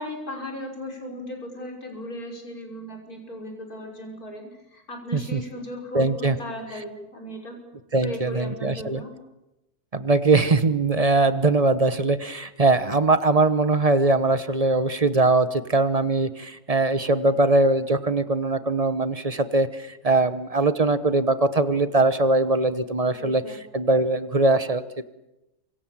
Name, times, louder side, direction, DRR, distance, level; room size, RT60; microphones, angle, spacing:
voice 1, 0.0-7.6 8.0-9.1 23.2-23.6, left 1 dB, 55° left, 2 dB, 6.2 m, -36 dB
voice 2, 5.9-6.4 7.9-9.0 9.9-24.8, right 2 dB, 25° right, 12 dB, 0.9 m, -21 dB
28.5 x 25.0 x 7.4 m, 0.94 s
omnidirectional pair, 1.9 m